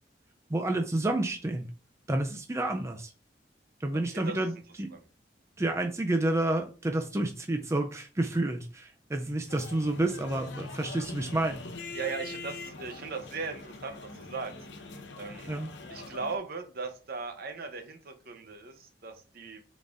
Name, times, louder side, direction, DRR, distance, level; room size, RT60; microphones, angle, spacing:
voice 1, 0.5-1.7 2.1-3.1 3.8-4.9 5.6-11.6 15.5-15.7, right 1 dB, 15° right, 4 dB, 0.4 m, -29 dB
voice 2, 4.1-4.4 4.9-5.0 11.9-14.5 15.2-15.5 15.9-19.6, right 4 dB, 60° right, 6 dB, 0.8 m, -38 dB
sound 1, 9.5-16.4, left 3 dB, 85° left, 0.7 m, -43 dB
4.0 x 3.8 x 3.5 m, 0.36 s
head